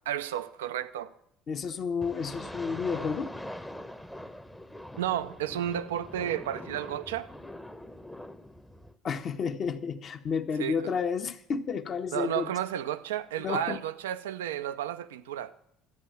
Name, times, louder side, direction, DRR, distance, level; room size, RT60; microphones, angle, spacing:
voice 1, 0.1-1.1 4.9-7.3 10.6-10.7 12.1-15.5, right 11 dB, 90° right, 0.5 m, -32 dB
voice 2, 1.5-3.3 9.0-12.5 13.4-13.8, left 6 dB, 50° left, 1.1 m, -31 dB
sound 1, 2.0-8.9, left 1 dB, 5° left, 0.8 m, -43 dB
12.0 x 8.2 x 7.7 m
hypercardioid pair, 70°, 0 cm